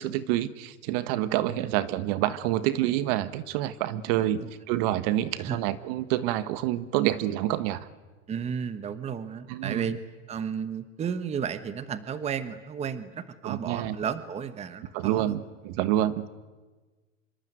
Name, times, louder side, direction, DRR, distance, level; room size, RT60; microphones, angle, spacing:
voice 1, 0.0-7.8 9.5-10.0 13.4-14.0 14.9-16.3, right 13 dB, 45° right, 15 dB, 1.5 m, -27 dB
voice 2, 4.2-4.5 5.4-5.6 8.3-10.0 10.3-15.4, right 7 dB, 15° right, 13 dB, 1.2 m, -33 dB
26.0 x 24.0 x 9.3 m, 1.3 s
supercardioid pair, 135°, 39 cm